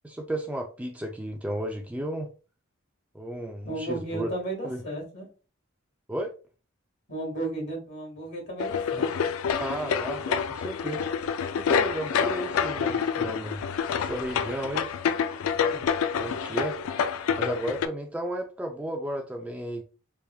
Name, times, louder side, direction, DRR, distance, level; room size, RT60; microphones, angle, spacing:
voice 1, 0.0-2.3 3.1-4.3 4.6-4.8 6.1-6.3 9.6-11.1 11.6-13.6 14.0-14.9 16.1-16.8 17.4-19.8, right 1 dB, 5° right, 0.3 m, -33 dB
voice 2, 3.7-5.3 7.1-9.3 15.6-15.9, right 2 dB, 55° left, 1.7 m, -34 dB
sound 1, 8.6-17.9, left 7 dB, 80° left, 0.3 m, -28 dB
3.4 x 3.3 x 2.2 m
head